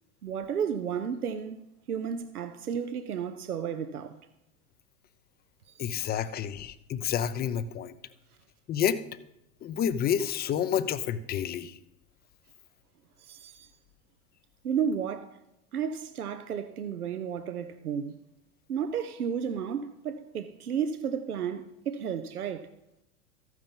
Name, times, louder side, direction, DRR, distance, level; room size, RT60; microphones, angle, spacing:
voice 1, 0.2-4.2 5.7-6.1 13.2-13.7 14.6-15.4 15.7-18.2 18.7-22.7, right 7 dB, 80° right, 0.9 m, -33 dB
voice 2, 5.8-7.9 8.7-9.0 9.6-11.8, left 9 dB, 20° left, 0.6 m, -29 dB
14.0 x 9.4 x 5.4 m
figure-of-eight pair, 90°, 44 cm